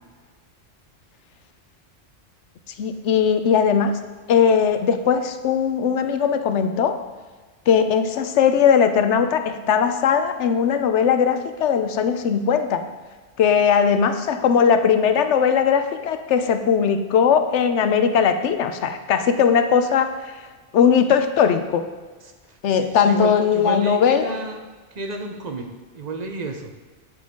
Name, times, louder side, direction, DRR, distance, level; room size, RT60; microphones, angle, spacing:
voice 1, 2.8-3.9 4.3-7.0 7.7-12.9 13.4-20.3 20.7-21.9 22.6-24.4, left 7 dB, 80° left, 9 dB, 1.0 m, -19 dB
voice 2, 22.7-24.6 24.9-26.7, right 2 dB, 40° right, 5 dB, 0.9 m, -31 dB
9.3 x 7.7 x 3.7 m, 1.4 s
omnidirectional pair, 1.2 m